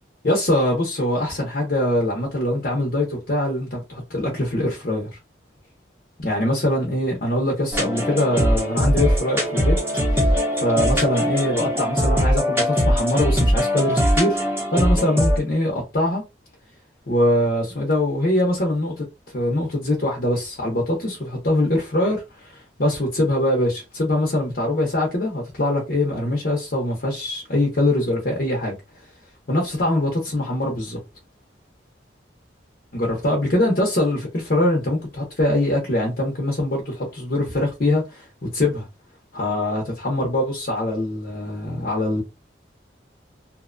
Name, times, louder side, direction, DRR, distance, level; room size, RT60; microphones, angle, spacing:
voice 1, 0.2-5.1 6.2-9.8 10.1-14.4 14.7-16.2 17.1-19.0 19.3-28.7 29.5-31.0 32.9-38.2 38.5-38.9 39.3-42.2, left 1 dB, 50° left, 0.7 m, -23 dB
sound 1, 7.7-15.4, equal, 15° right, 0.8 m, -21 dB
2.7 x 2.2 x 2.5 m
head